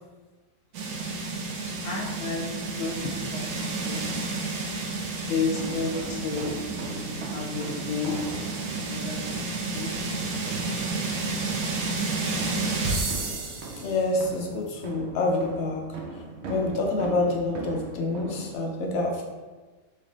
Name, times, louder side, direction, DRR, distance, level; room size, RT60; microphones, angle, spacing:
sound 1, 0.7-14.0, right 3 dB, 85° right, 1.1 m, -31 dB
voice 1, 1.8-2.4 2.8-3.5 3.8-4.1 5.3-6.6 6.9-8.1 8.5-9.2 9.7-9.9, left 4 dB, 85° left, -2 dB, 1.1 m, -31 dB
sound 2, 5.5-18.5, right 3 dB, 65° right, 0.7 m, -39 dB
voice 2, 13.8-15.9 16.5-19.2, left 2 dB, 65° left, 1 dB, 0.7 m, -27 dB
3.3 x 3.2 x 3.8 m, 1.3 s
omnidirectional pair, 1.6 m